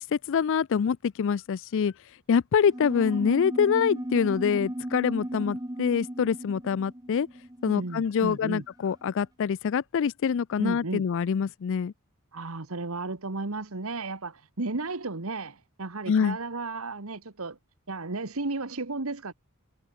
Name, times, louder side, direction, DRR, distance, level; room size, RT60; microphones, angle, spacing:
voice 1, 0.0-1.9 2.3-7.3 7.6-11.9 16.1-16.4, left 7 dB, 60° left, 0.4 m, -25 dB
sound 1, 2.6-8.6, right 1 dB, 15° right, 1.7 m, -36 dB
voice 2, 7.7-8.6 10.6-11.0 12.3-17.6 17.9-19.3, right 3 dB, 70° right, 1.5 m, -34 dB
head